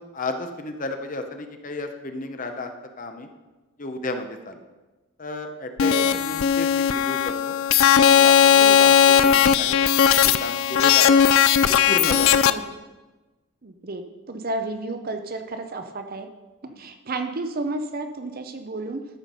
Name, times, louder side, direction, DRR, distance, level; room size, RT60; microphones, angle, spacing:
voice 1, 0.0-2.7 3.0-3.3 3.8-4.6 5.2-7.6 8.1-8.9 9.2-11.1 11.9-12.6 16.7-16.8, left 2 dB, 35° left, 6 dB, 0.8 m, -33 dB
sound 1, 5.8-12.5, left 8 dB, 70° left, 0.4 m, -17 dB
voice 2, 5.8-6.2 8.5-8.8 12.5-12.6 13.6-16.3 16.8-19.0, right 2 dB, 40° right, 7 dB, 0.6 m, -32 dB
13.5 x 5.8 x 5.3 m, 1.2 s
head